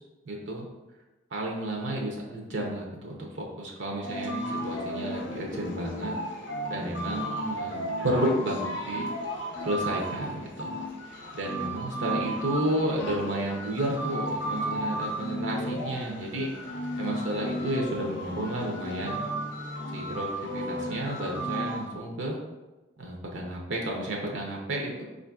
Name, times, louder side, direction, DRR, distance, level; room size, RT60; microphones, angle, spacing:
voice 1, 0.3-0.6 1.3-6.1 6.7-7.8 8.0-9.1 9.6-10.7 11.3-16.5 17.0-19.2 19.9-20.3 20.5-22.4 23.0-25.0, right 1 dB, 70° right, -1 dB, 0.6 m, -31 dB
sound 1, 4.0-21.9, equal, 65° left, 0.5 m, -34 dB
4.8 x 2.5 x 2.2 m, 1.1 s
head